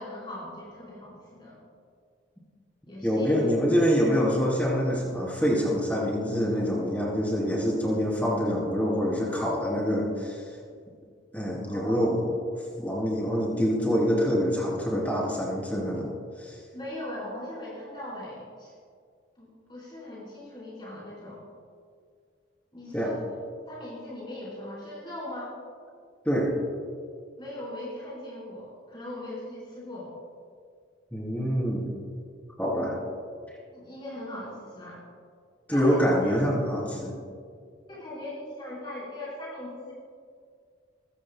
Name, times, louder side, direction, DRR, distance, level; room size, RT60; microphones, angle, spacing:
voice 1, 0.0-1.6 2.9-3.3 11.7-12.0 16.7-18.7 19.4-21.4 22.7-23.2 23.7-25.5 27.4-30.1 33.7-35.0 35.7-36.4 37.9-39.9, left 1 dB, 25° left, -7 dB, 4.2 m, -39 dB
voice 2, 3.0-10.4 11.3-12.2 12.8-16.1 16.4-16.6 22.9-23.1 26.2-26.5 31.1-31.9 32.6-33.0 35.7-37.2, equal, 10° left, -4 dB, 3.2 m, -25 dB
22.0 x 15.5 x 2.2 m, 2.1 s
head